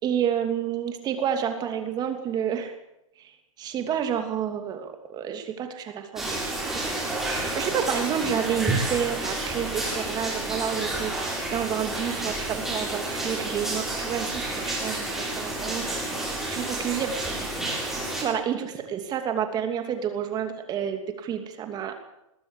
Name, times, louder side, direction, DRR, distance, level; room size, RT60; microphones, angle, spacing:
voice 1, 0.0-2.7 3.2-16.1 16.5-17.2 18.2-21.9, right 8 dB, 25° right, 6 dB, 2.9 m, -30 dB
sound 1, 6.2-18.2, right 2 dB, ahead, 8.0 m, -30 dB
21.0 x 13.5 x 10.0 m, 0.87 s
hypercardioid pair, 150°, 17 cm